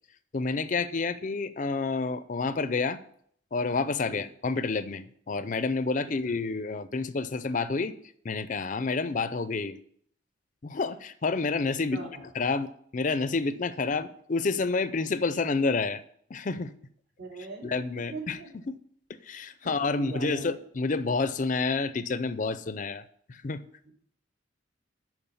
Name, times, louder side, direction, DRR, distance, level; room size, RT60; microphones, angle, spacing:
voice 1, 0.3-3.0 3.5-7.9 8.2-9.8 10.6-16.0 16.3-16.7 17.6-18.8 19.2-23.0 23.3-23.6, left 4 dB, 40° left, 13 dB, 0.5 m, -29 dB
voice 2, 11.9-12.2 17.2-17.7 18.1-18.5 19.6-20.5 23.8-23.9, right 3 dB, 65° right, -2 dB, 3.3 m, -40 dB
11.0 x 4.7 x 7.0 m, 0.64 s
head